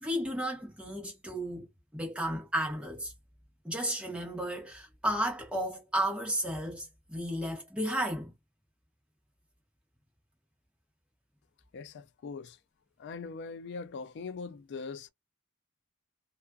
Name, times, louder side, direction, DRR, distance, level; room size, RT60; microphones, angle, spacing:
voice 1, 0.0-1.7 1.9-3.1 3.6-8.3, equal, 5° right, 1.0 m, -33 dB
voice 2, 11.7-12.6 13.0-15.1, left 4 dB, 55° left, 0.3 m, -41 dB
2.4 x 2.4 x 2.2 m
head